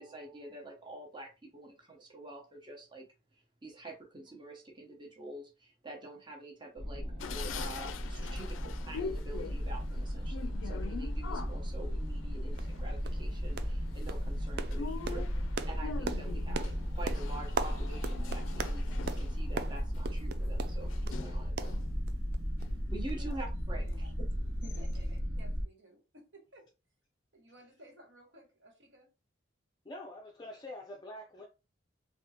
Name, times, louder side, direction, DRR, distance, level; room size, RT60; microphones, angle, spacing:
voice 1, 0.0-3.1 3.6-15.3 15.7-21.7 22.9-23.8, right 2 dB, 25° right, 0.9 m, -47 dB
sound 1, 6.8-25.6, equal, 90° right, 0.9 m, -35 dB
sound 2, 7.2-22.0 22.4-23.4 23.9-24.0 24.3-25.2, left 5 dB, 85° left, 0.4 m, -45 dB
sound 3, 12.1-12.2 12.6-12.7 13.0-13.3 13.6-13.8 14.1-21.2 21.6-22.4 22.6-22.7 23.1-23.2, right 5 dB, 55° right, 0.3 m, -40 dB
voice 2, 23.7-24.1 24.6-26.7 27.3-29.1, equal, 70° right, 1.4 m, -56 dB
voice 3, 29.8-31.5, left 1 dB, 20° left, 0.4 m, -45 dB
3.5 x 2.3 x 2.8 m
head